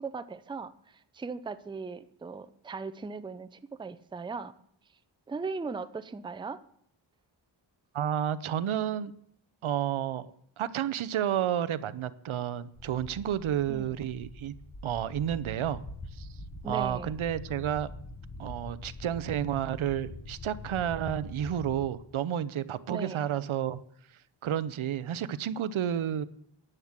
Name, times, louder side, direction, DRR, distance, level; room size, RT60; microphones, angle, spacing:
voice 1, 0.0-4.5 5.3-6.6 13.7-14.0 16.6-17.1 22.9-23.2, right 4 dB, 10° right, 13 dB, 0.4 m, -38 dB
voice 2, 7.9-9.1 9.6-10.3 10.6-14.5 14.8-15.8 16.1-16.3 16.7-17.9 18.4-23.8 24.4-26.2, right 10 dB, 80° right, 16 dB, 0.7 m, -31 dB
sound 1, 12.7-21.9, left 2 dB, 30° left, 1.1 m, -44 dB
11.0 x 8.0 x 7.3 m, 0.69 s
wide cardioid pair, 155°, 47 cm